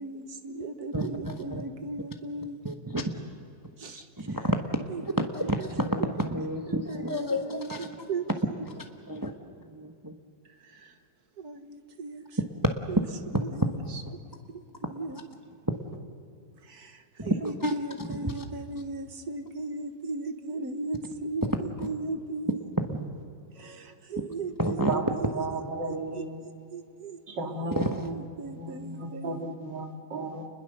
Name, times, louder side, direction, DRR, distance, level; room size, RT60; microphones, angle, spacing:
voice 1, 0.0-2.6 3.8-4.4 4.9-5.7 6.7-8.3 10.5-11.0 11.4-12.4 12.9-13.0 13.3-14.0 14.5-14.6 14.9-15.2 16.6-22.6 23.5-25.5 25.9-29.4, right 3 dB, 60° right, 1.9 m, -37 dB
voice 2, 0.9-1.6 2.6-3.3 4.2-4.9 5.2-7.9 8.8-9.3 9.6-10.1 13.6-13.7 14.8-15.0 15.6-15.8 17.2-18.4 21.8-21.9 22.8-22.9 24.6-25.0 27.8-28.1, right 1 dB, 15° right, 1.0 m, -30 dB
voice 3, 25.3-26.4 27.3-28.1 28.4-30.5, right 2 dB, 75° right, 2.9 m, -34 dB
30.0 x 21.5 x 6.8 m
omnidirectional pair, 1.9 m